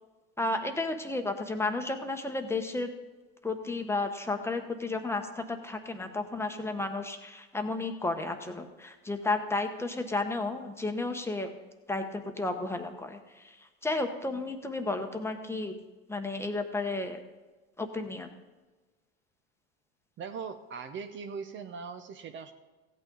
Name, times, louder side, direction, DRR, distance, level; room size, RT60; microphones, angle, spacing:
voice 1, 0.4-2.9 3.4-11.5 11.9-15.8 16.1-17.2 17.8-18.3, left 2 dB, 10° left, 5 dB, 1.0 m, -33 dB
voice 2, 20.2-22.5, right 5 dB, 35° right, 8 dB, 0.7 m, -40 dB
15.5 x 8.9 x 3.9 m, 1.2 s
supercardioid pair, 115°, 33 cm